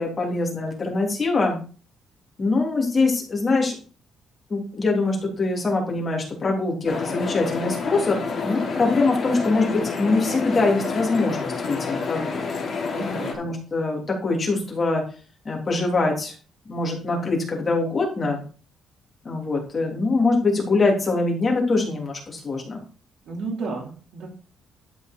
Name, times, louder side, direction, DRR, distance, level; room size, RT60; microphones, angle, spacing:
voice 1, 0.0-1.6 2.4-3.7 4.5-8.2 8.4-12.4 13.4-15.0 15.4-16.3 16.7-18.4 19.2-22.8, left 3 dB, 25° left, -1 dB, 3.2 m, -23 dB
sound 1, 6.9-13.3, left 4 dB, 45° left, 3.0 m, -29 dB
voice 2, 12.9-13.3 23.3-24.3, right 3 dB, 65° right, -1 dB, 4.2 m, -32 dB
12.0 x 5.5 x 4.5 m, 0.38 s
cardioid pair, 150°, 0 cm